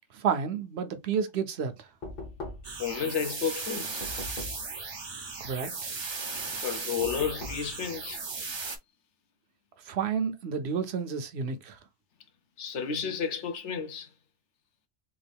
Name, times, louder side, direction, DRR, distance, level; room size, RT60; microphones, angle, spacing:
voice 1, 0.1-1.9 5.4-5.9 9.9-11.8, right 6 dB, 70° right, 0.9 m, -31 dB
Knock, 2.0-2.9 4.0-4.7 7.0-7.7, left 2 dB, 50° left, 1.2 m, -40 dB
sound 1, 2.6-8.8, right 4 dB, 30° right, 0.5 m, -37 dB
voice 2, 2.8-4.0 6.6-8.2 12.6-14.1, left 7 dB, 80° left, 1.1 m, -32 dB
3.7 x 2.4 x 3.4 m
omnidirectional pair, 1.2 m